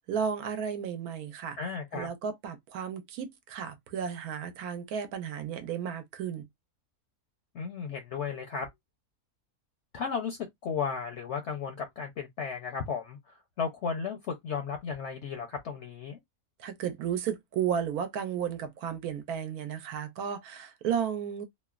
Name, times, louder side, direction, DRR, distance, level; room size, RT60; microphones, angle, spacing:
voice 1, 0.1-1.6 1.9-6.5 16.6-21.5, right 8 dB, 85° right, 1.1 m, -33 dB
voice 2, 1.6-2.1 7.5-8.7 9.9-16.2, left 6 dB, 65° left, 0.7 m, -34 dB
3.0 x 2.0 x 2.3 m
omnidirectional pair, 1.6 m